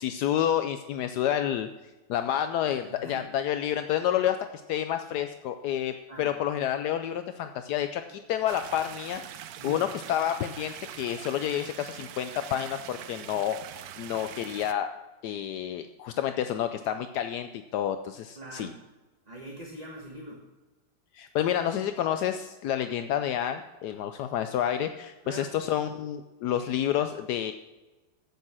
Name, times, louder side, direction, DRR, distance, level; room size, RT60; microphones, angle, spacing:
voice 1, 0.0-1.7 2.1-9.2 9.6-14.9 15.2-18.7 21.1-27.5, left 10 dB, 75° left, 8 dB, 1.1 m, -29 dB
voice 2, 2.7-3.3 6.1-6.3 9.6-9.8 18.3-18.8 19.2-20.4 25.2-25.5, right 1 dB, 25° right, -1 dB, 1.4 m, -43 dB
sound 1, 8.5-14.7, right 11 dB, 70° right, 1.1 m, -43 dB
10.5 x 8.3 x 6.0 m, 1.2 s
omnidirectional pair, 1.8 m